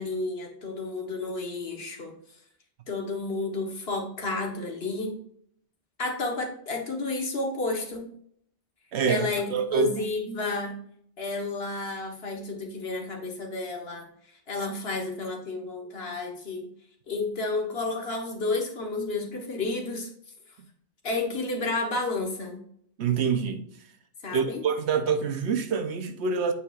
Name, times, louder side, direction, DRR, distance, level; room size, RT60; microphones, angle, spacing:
voice 1, 0.0-2.1 2.9-5.1 6.0-8.1 9.1-10.8 11.2-16.7 17.1-20.1 21.0-22.6 24.2-24.6, left 3 dB, 60° left, 1.5 m, -31 dB
voice 2, 8.9-9.9 23.0-23.6 24.3-26.5, right 6 dB, 70° right, 1.0 m, -26 dB
8.5 x 4.8 x 2.4 m
omnidirectional pair, 1.2 m